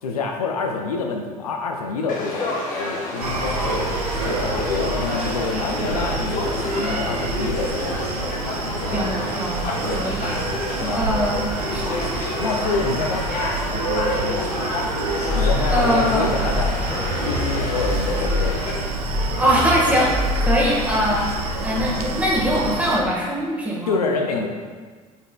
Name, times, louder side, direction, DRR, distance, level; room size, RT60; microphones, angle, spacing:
voice 1, 0.0-6.5 6.8-7.8 8.1-8.3 8.9-9.2 9.8-10.0 10.8-11.0 12.4-13.3 13.7-14.5 15.3-16.9 17.2-18.6 21.7-21.9 23.9-24.5, left 4 dB, 80° left, 2 dB, 0.4 m, -27 dB
Conversation / Crowd, 2.1-18.7, left 2 dB, 45° left, 0.9 m, -29 dB
Screaming, 3.2-23.0, right 3 dB, 85° right, 0.4 m, -28 dB
voice 2, 8.9-10.4 10.9-12.0 15.7-16.3 19.4-21.3 21.6-24.0, equal, 5° right, -5 dB, 1.4 m, -22 dB
sound 1, 15.3-22.7, left 3 dB, 20° left, 1.4 m, -27 dB
5.2 x 4.3 x 2.2 m, 1.5 s
figure-of-eight pair, 55°, 19 cm